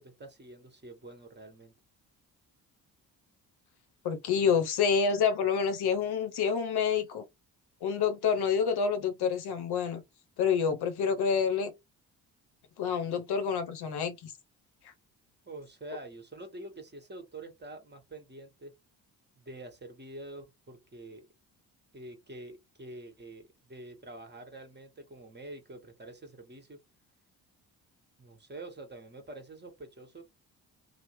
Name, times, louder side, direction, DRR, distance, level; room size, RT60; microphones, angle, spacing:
voice 1, 0.0-1.7 15.4-18.7 19.4-21.3 21.9-26.8 28.2-30.2, right 2 dB, 20° right, 1.3 m, -46 dB
voice 2, 4.0-7.2 7.8-10.0 10.4-11.7 12.8-14.3 14.8-14.9, left 6 dB, 55° left, 0.7 m, -28 dB
2.9 x 2.0 x 3.1 m
hypercardioid pair, 40°, 47 cm